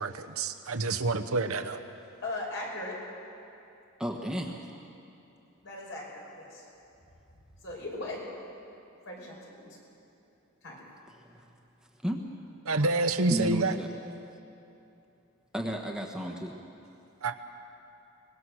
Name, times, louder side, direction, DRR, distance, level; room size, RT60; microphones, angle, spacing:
voice 1, 0.0-1.8 12.7-13.7 17.2-17.4, right 3 dB, 90° right, 8 dB, 1.1 m, -28 dB
voice 2, 2.2-3.0 5.6-6.7 7.6-8.3 9.1-9.8 10.6-10.8, left 2 dB, 60° left, -3 dB, 5.8 m, -38 dB
voice 3, 4.0-4.6 11.2-11.4 12.0-12.2 13.3-13.9 15.5-16.6, equal, 5° right, 0 dB, 1.2 m, -33 dB
24.0 x 20.5 x 6.4 m, 2.8 s
head